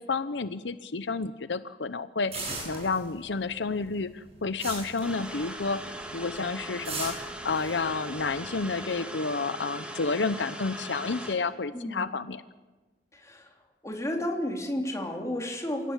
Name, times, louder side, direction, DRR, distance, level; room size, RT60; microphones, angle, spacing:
voice 1, 0.0-7.2 7.4-12.4, left 4 dB, 80° left, 13 dB, 0.8 m, -30 dB
sound 1, 2.3-3.4 3.7-5.8 6.1-6.4 6.8-8.7, right 3 dB, 35° right, 7.6 m, -37 dB
sound 2, 5.0-11.3, right 1 dB, 5° right, 3.0 m, -39 dB
voice 2, 11.7-12.2 13.1-13.6 13.8-15.9, left 1 dB, 20° left, 2 dB, 3.3 m, -32 dB
27.5 x 17.5 x 7.5 m, 1.2 s
head